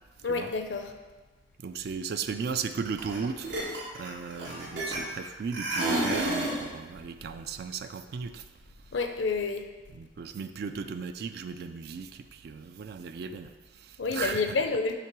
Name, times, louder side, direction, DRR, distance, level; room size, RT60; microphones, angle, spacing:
voice 1, 0.2-0.9 8.9-9.7 14.0-14.9, left 4 dB, 80° left, 6 dB, 0.6 m, -29 dB
voice 2, 1.6-8.5 9.9-14.6, right 5 dB, 60° right, 9 dB, 0.3 m, -36 dB
sound 1, 3.0-3.2 3.4-5.2 5.5-6.6, right 1 dB, 80° right, 1.8 m, -30 dB
5.8 x 3.7 x 6.0 m, 1.3 s
head